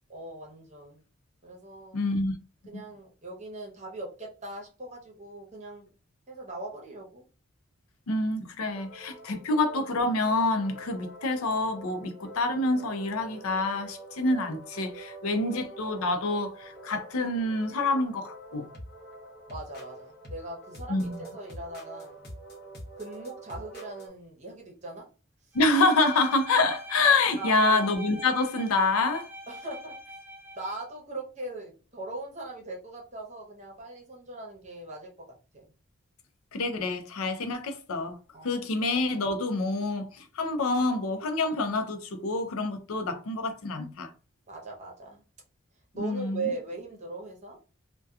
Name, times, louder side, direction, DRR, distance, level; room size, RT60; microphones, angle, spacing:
voice 1, 0.1-1.0 1.4-2.0 2.7-5.9 6.3-7.2 19.5-22.2 23.0-25.1 25.5-25.6 27.4-27.8 29.5-29.9 30.6-35.3 35.5-35.7 38.3-38.6 44.5-45.2 45.9-47.6, right 2 dB, 35° right, 0.8 m, -40 dB
voice 2, 1.9-2.3 2.7-2.8 8.1-18.7 20.9-21.2 25.5-29.3 36.5-38.2 38.4-44.1 45.9-46.5, left 2 dB, 90° left, 0.5 m, -27 dB
sound 1, 8.8-24.1, right 1 dB, 45° left, 0.8 m, -46 dB
Bowed string instrument, 25.5-30.9, equal, 10° right, 0.3 m, -43 dB
2.7 x 2.2 x 2.3 m
head